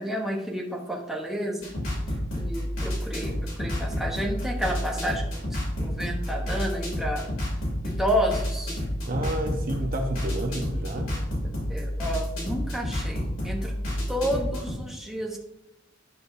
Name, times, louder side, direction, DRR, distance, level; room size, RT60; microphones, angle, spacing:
voice 1, 0.0-1.7 2.3-7.3 7.8-8.8 11.4-13.8 14.1-15.4, equal, ahead, -1 dB, 1.0 m, -31 dB
sound 1, 1.6-14.7, equal, 80° left, 2.9 m, -30 dB
voice 2, 9.1-11.1, right 1 dB, 45° right, 4 dB, 0.8 m, -30 dB
10.0 x 5.6 x 2.7 m, 0.90 s
head